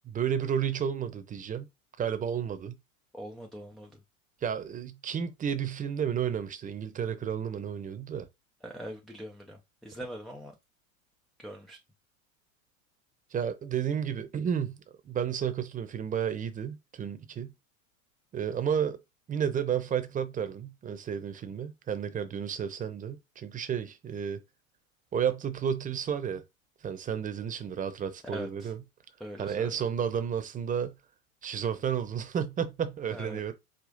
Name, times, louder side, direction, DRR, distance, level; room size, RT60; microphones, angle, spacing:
voice 1, 0.0-1.7 2.0-2.8 4.4-8.3 13.3-14.8 15.0-17.5 18.3-19.0 19.3-24.4 25.1-26.4 26.8-28.8 29.4-31.0 31.4-33.5, right 8 dB, 20° right, 0.7 m, -32 dB
voice 2, 3.1-3.9 8.6-10.5 11.4-11.8 28.3-28.7 29.2-29.7 33.1-33.4, equal, ahead, 0.3 m, -42 dB
5.1 x 2.4 x 3.8 m
hypercardioid pair, 95°, 41 cm